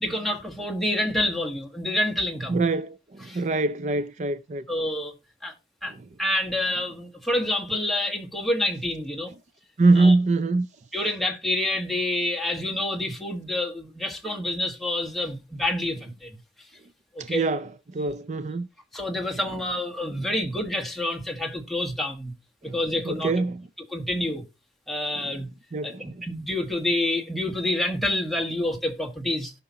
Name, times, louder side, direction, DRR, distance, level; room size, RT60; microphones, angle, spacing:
voice 1, 0.0-2.6 3.3-3.4 4.7-5.1 5.4-5.5 5.8-5.9 6.2-9.3 10.0-10.1 10.9-16.4 17.1-17.4 18.9-22.3 22.6-23.3 23.9-24.4 24.9-25.5 25.8-25.9 26.2-29.5, left 1 dB, ahead, 1.5 m, -27 dB
voice 2, 2.5-4.6 5.9-6.1 9.8-10.7 17.2-18.7 20.2-20.3 22.6-23.7 25.1-25.4 25.7-26.3, right 3 dB, 40° right, 0.4 m, -24 dB
17.0 x 5.7 x 2.8 m
head